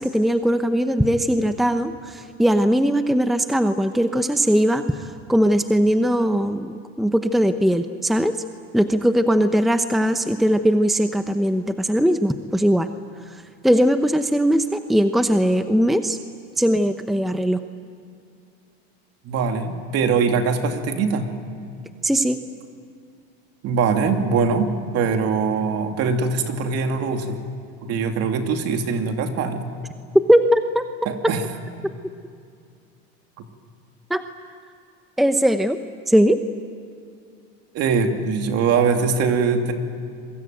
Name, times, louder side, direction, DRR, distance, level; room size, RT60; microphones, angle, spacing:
voice 1, 0.0-8.4 8.7-12.9 13.3-16.2 16.6-17.6 22.0-22.4 30.3-30.8 34.1-34.2 35.2-35.8 36.1-36.4, equal, ahead, 8 dB, 0.8 m, -20 dB
voice 2, 19.2-21.3 23.6-27.4 27.8-29.6 31.0-31.4 37.7-39.7, right 5 dB, 55° right, 5 dB, 2.9 m, -22 dB
28.0 x 23.0 x 9.2 m, 2.4 s
cardioid pair, 130°, 30 cm